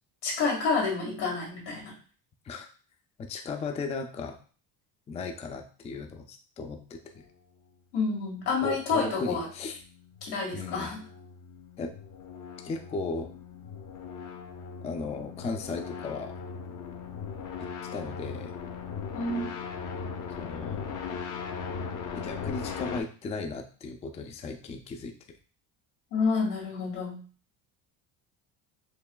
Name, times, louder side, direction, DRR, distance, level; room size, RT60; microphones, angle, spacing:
voice 1, 0.2-1.9 7.9-9.5 10.2-11.0 19.1-19.5 26.1-27.2, left 4 dB, 85° left, -3 dB, 1.8 m, -29 dB
voice 2, 3.3-4.4 5.1-7.2 8.6-9.8 10.5-10.9 11.8-11.9 12.6-13.3 14.8-16.3 17.9-18.5 20.4-20.9 22.1-25.1, left 4 dB, 20° left, 5 dB, 0.3 m, -36 dB
sound 1, 8.5-23.0, left 6 dB, 50° left, 0.7 m, -39 dB
4.6 x 2.9 x 2.2 m, 0.40 s
cardioid pair, 115°, 39 cm